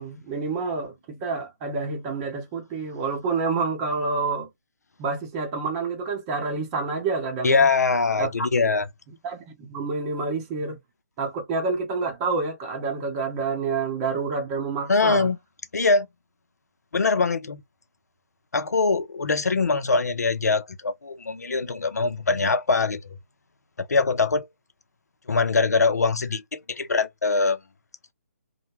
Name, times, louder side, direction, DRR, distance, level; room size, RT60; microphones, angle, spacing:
voice 1, 0.0-4.5 5.0-7.7 8.2-8.3 9.2-10.8 11.2-15.3, right 4 dB, 20° right, 0.8 m, -28 dB
voice 2, 7.4-8.9 14.9-15.4 15.7-16.1 16.9-17.6 18.5-23.0 23.8-24.5 25.3-27.6, left 4 dB, 80° left, 0.6 m, -22 dB
2.2 x 2.2 x 2.9 m
figure-of-eight pair, 150°, 9 cm